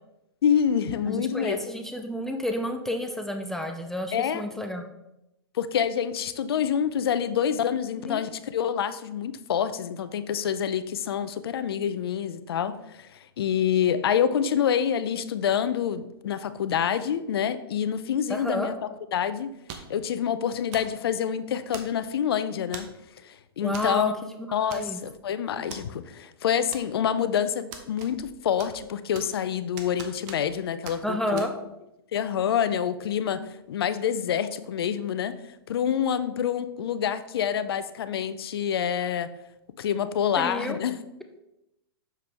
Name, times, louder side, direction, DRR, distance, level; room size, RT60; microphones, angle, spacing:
voice 1, 0.4-1.6 4.1-4.4 5.5-13.1 13.4-18.7 19.1-19.5 19.9-22.9 23.2-24.1 24.5-31.4 32.1-35.3 35.7-39.3 39.8-41.0, left 8 dB, 65° left, 13 dB, 0.5 m, -27 dB
voice 2, 1.1-4.9 8.1-8.2 18.3-18.7 23.6-24.1 24.4-25.0 31.0-31.5 40.4-40.8, equal, 5° left, 4 dB, 0.4 m, -30 dB
sound 1, 19.7-20.0 20.7-21.0 21.7-22.2 22.7-23.0 23.7-23.9 24.2-24.3 24.7-25.2 25.7-25.8 26.7-27.2 27.7-28.3 28.6-29.4 29.8-30.6 30.8-31.0 31.4-31.5, right 6 dB, 40° right, 0.9 m, -41 dB
6.8 x 4.7 x 3.4 m, 0.89 s
hypercardioid pair, 120°, 13 cm